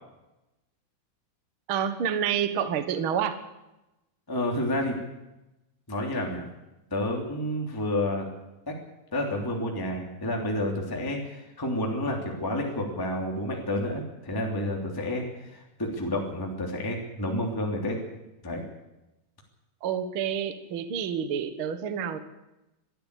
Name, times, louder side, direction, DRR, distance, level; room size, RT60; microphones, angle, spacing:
voice 1, 1.7-3.4 19.8-22.2, right 8 dB, 55° right, 10 dB, 1.4 m, -28 dB
voice 2, 4.3-5.0 5.9-6.5 6.9-8.2 8.7-8.8 9.1-18.0 18.4-18.6, left 1 dB, 5° left, 0 dB, 2.8 m, -30 dB
22.5 x 13.5 x 8.5 m, 0.97 s
omnidirectional pair, 4.3 m